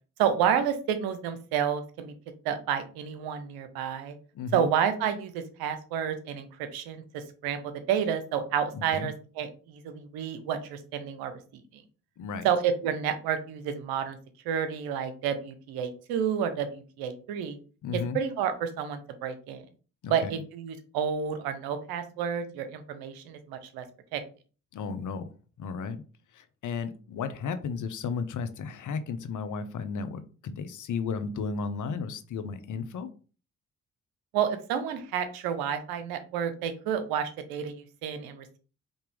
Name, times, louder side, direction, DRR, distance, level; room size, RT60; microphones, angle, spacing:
voice 1, 0.2-2.1 2.4-4.2 4.5-11.8 12.4-14.2 14.4-17.6 17.9-19.7 20.1-23.8 24.1-24.2 34.3-38.6, right 8 dB, 75° right, 10 dB, 0.8 m, -30 dB
voice 2, 4.3-4.7 8.7-9.1 12.2-12.5 17.8-18.2 20.0-20.3 24.7-26.0 26.3-33.1, left 5 dB, 55° left, 10 dB, 0.8 m, -34 dB
5.2 x 2.8 x 3.4 m, 0.37 s
hypercardioid pair, 45°, 37 cm